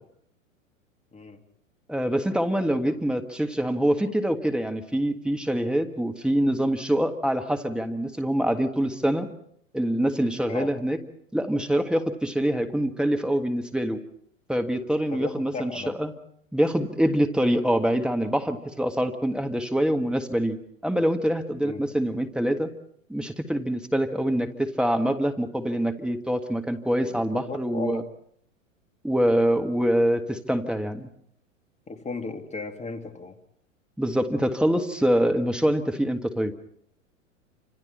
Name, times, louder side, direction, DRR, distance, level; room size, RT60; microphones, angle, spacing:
voice 1, 1.9-9.3 9.7-11.0 11.3-14.0 14.5-16.1 16.5-20.6 20.8-22.7 23.1-28.0 29.0-31.1 34.0-36.5, equal, ahead, 5 dB, 1.7 m, -25 dB
voice 2, 15.1-15.9 21.6-21.8 27.0-27.2 27.5-28.0 31.9-33.3, left 4 dB, 15° left, 6 dB, 2.2 m, -35 dB
28.5 x 26.5 x 4.3 m, 0.67 s
hypercardioid pair, 100°, 40 cm